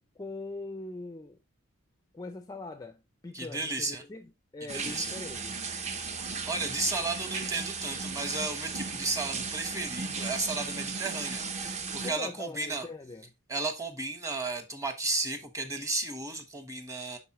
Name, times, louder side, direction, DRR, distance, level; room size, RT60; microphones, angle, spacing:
voice 1, 0.0-1.4 2.1-5.6 12.0-13.3, left 3 dB, 15° left, 0.4 m, -42 dB
voice 2, 3.3-4.0 4.7-5.1 6.1-12.9 13.5-17.2, right 3 dB, 15° right, 1.1 m, -34 dB
sound 1, 4.7-12.1, right 4 dB, 30° right, 0.7 m, -36 dB
10.5 x 4.1 x 3.0 m
head